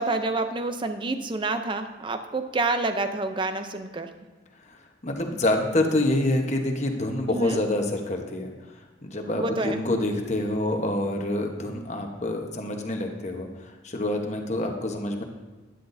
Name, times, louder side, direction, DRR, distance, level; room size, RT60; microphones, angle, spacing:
voice 1, 0.0-4.1 7.3-7.6 9.4-9.8, right 2 dB, 25° right, 8 dB, 0.6 m, -28 dB
voice 2, 4.6-15.2, left 1 dB, 35° left, 3 dB, 1.1 m, -27 dB
12.0 x 10.0 x 2.7 m, 1.3 s
head